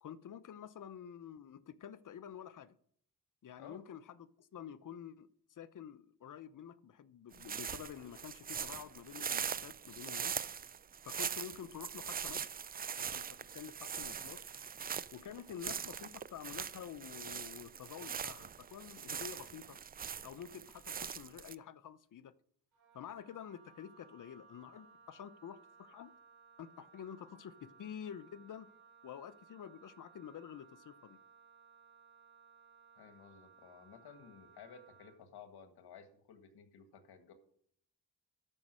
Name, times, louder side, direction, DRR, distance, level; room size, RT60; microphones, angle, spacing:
voice 1, 0.0-2.8 3.4-10.4 11.0-12.5 13.0-14.5 15.1-19.8 20.2-22.3 22.9-26.1 26.6-28.7 29.0-31.2, left 8 dB, 55° left, 0.7 m, -49 dB
sound 1, 7.3-21.5, right 7 dB, 25° right, 0.3 m, -42 dB
Wind instrument woodwind instrument, 22.7-35.2, right 5 dB, 80° right, 3.2 m, -62 dB
voice 2, 33.0-37.3, left 7 dB, 75° left, 1.8 m, -55 dB
13.0 x 5.3 x 6.2 m
cardioid pair, 65°, 39 cm